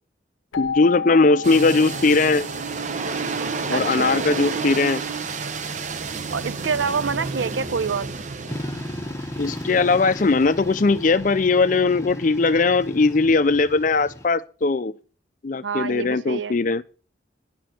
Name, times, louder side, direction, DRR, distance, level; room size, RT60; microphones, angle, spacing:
Keyboard (musical), 0.5-3.1, left 6 dB, 85° left, 0.7 m, -32 dB
voice 1, 0.6-2.5 3.7-5.0 9.4-14.9 15.4-16.8, left 3 dB, 45° left, 0.5 m, -19 dB
sound 1, 1.4-11.3, right 4 dB, 40° right, 0.8 m, -31 dB
voice 2, 3.7-4.2 6.3-8.1 15.6-16.6, right 5 dB, 75° right, 0.7 m, -26 dB
sound 2, 8.5-14.3, left 1 dB, 15° left, 1.0 m, -35 dB
10.5 x 6.3 x 7.7 m
head